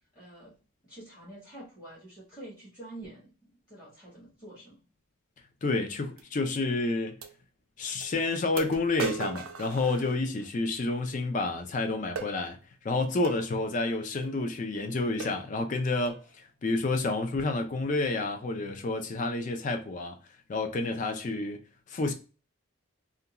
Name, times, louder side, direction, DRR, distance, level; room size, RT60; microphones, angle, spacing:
voice 1, 0.1-0.5 0.8-4.8, right 1 dB, 20° left, 1.0 m, -47 dB
voice 2, 5.6-7.2 7.8-12.6 12.8-16.2 16.6-20.2 20.5-21.6 21.9-22.1, left 3 dB, 35° left, 0.4 m, -29 dB
sound 1, 6.2-6.3 7.2-7.3 8.0-8.1 8.6-10.5 12.2-12.4 13.2-13.4 14.2-14.4 14.8-14.9 15.2-15.5 16.1-16.3, right 4 dB, 80° right, 0.5 m, -37 dB
2.5 x 2.2 x 2.8 m
head